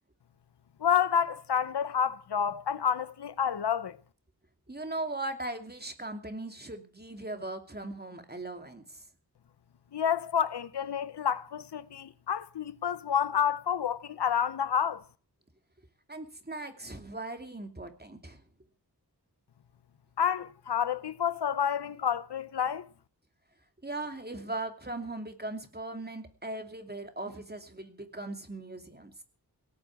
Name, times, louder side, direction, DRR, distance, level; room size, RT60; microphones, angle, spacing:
voice 1, 0.8-4.0 9.9-15.0 20.2-22.9, left 8 dB, 85° left, 0.8 m, -29 dB
voice 2, 4.7-9.0 16.1-18.4 23.8-29.1, right 2 dB, 25° right, 2.6 m, -39 dB
18.0 x 7.0 x 9.3 m
wide cardioid pair, 50°, 39 cm